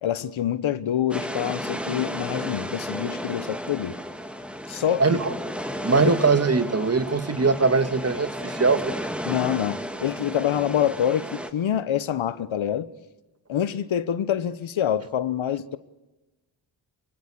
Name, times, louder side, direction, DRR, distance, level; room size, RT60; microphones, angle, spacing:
voice 1, 0.0-3.9 4.7-5.2 6.0-6.1 9.2-12.9 13.5-15.8, left 10 dB, 75° left, 1.1 m, -26 dB
sound 1, 1.1-11.5, equal, ahead, 2.1 m, -33 dB
voice 2, 5.0-5.3 5.8-8.9, right 4 dB, 30° right, 1.9 m, -21 dB
24.0 x 23.5 x 8.4 m
cardioid pair, 75°, 48 cm